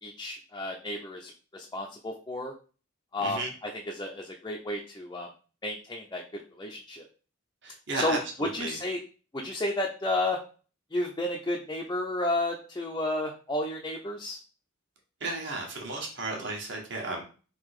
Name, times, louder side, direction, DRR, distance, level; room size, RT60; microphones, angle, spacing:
voice 1, 0.0-2.5 3.1-5.3 5.6-7.1 7.9-9.0 9.3-10.4 10.9-14.4, left 1 dB, 20° left, -1 dB, 0.5 m, -32 dB
voice 2, 7.6-8.8 15.2-17.2, right 2 dB, 60° right, 0 dB, 1.4 m, -34 dB
3.7 x 2.9 x 4.7 m, 0.37 s
head